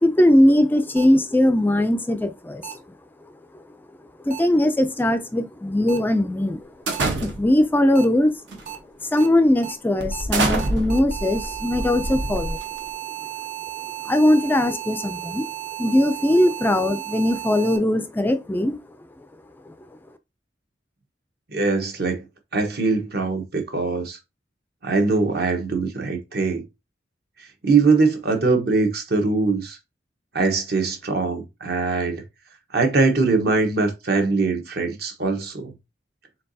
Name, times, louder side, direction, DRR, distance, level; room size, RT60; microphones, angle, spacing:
voice 1, 0.0-2.8 4.3-6.7 7.2-8.3 9.0-12.6 14.0-15.5 15.8-18.8 19.7-19.8, left 1 dB, 10° left, 0.3 m, -20 dB
sound 1, 1.0-1.1 2.6-2.7 4.3-4.4 5.9-6.0 6.9-7.0 8.0-8.1 8.7-8.8 9.2-9.3 9.6-9.7 10.1-10.2 10.6-17.8, right 13 dB, 45° right, 0.8 m, -34 dB
sound 2, 6.9-7.7 8.5-8.8 9.2-9.3 10.0-12.9, right 2 dB, 80° right, 1.0 m, -26 dB
voice 2, 21.5-22.2 22.5-24.2 24.8-26.6 27.4-29.8 30.3-32.2 32.7-35.7, right 3 dB, 60° right, 1.1 m, -22 dB
4.5 x 3.8 x 2.7 m
head